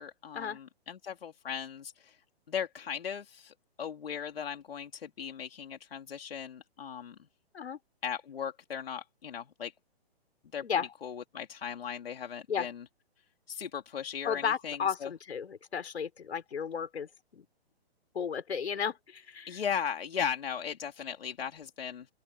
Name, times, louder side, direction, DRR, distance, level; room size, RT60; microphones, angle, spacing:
voice 1, 0.0-2.2 2.5-7.1 8.0-9.7 10.5-10.6 11.0-12.8 13.5-15.1 19.5-22.1, left 7 dB, 65° left, 3.3 m, -37 dB
voice 2, 14.2-17.5 18.1-19.6, left 7 dB, 85° left, 4.6 m, -34 dB
open air
hypercardioid pair, 180°, 32 cm